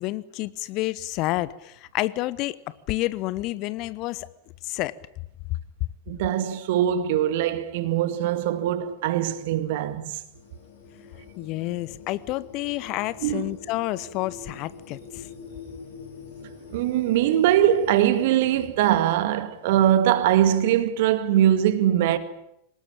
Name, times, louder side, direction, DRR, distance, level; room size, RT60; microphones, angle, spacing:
voice 1, 0.0-4.3 4.6-4.9 11.4-15.3, left 17 dB, 40° left, 0.9 m, -29 dB
voice 2, 6.1-10.2 13.2-13.4 16.7-22.2, right 11 dB, 50° right, 2.0 m, -22 dB
sound 1, 10.3-18.7, left 4 dB, 55° left, 4.7 m, -44 dB
23.5 x 20.0 x 8.8 m
figure-of-eight pair, 90°, 0 cm